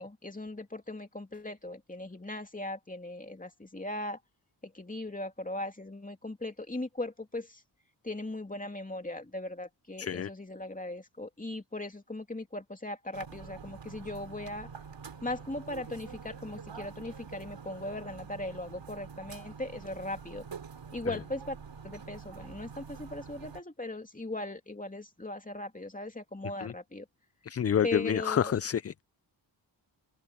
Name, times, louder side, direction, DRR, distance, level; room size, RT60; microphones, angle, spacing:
voice 1, 0.0-4.2 4.6-7.6 8.0-14.7 15.2-20.4 20.9-21.6 21.8-27.1 27.8-28.5, left 2 dB, 20° left, 2.8 m, -38 dB
voice 2, 10.0-10.3 26.6-26.7 27.4-29.0, left 9 dB, 35° left, 0.4 m, -28 dB
sound 1, 13.1-23.6, right 6 dB, 85° right, 3.3 m, -46 dB
open air
wide cardioid pair, 70°, 43 cm